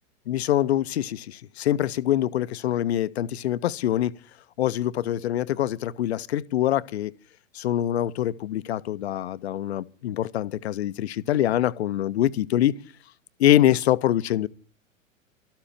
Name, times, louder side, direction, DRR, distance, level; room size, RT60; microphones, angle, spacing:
voice 1, 0.3-4.2 4.6-7.1 7.5-12.8 13.4-14.5, left 12 dB, 50° left, 0.7 m, -24 dB
13.0 x 7.4 x 9.8 m
figure-of-eight pair, 100°, 40 cm